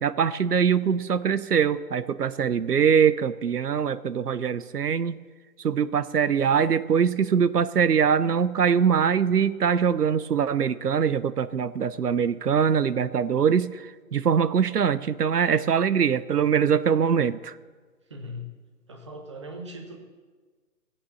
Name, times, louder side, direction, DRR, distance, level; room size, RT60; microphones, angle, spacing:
voice 1, 0.0-5.2 5.6-17.5, right 7 dB, 85° right, 16 dB, 0.8 m, -23 dB
voice 2, 18.1-18.5 18.9-20.0, left 1 dB, 20° right, 3 dB, 1.1 m, -39 dB
16.0 x 8.7 x 7.1 m, 1.4 s
figure-of-eight pair, 165°, 46 cm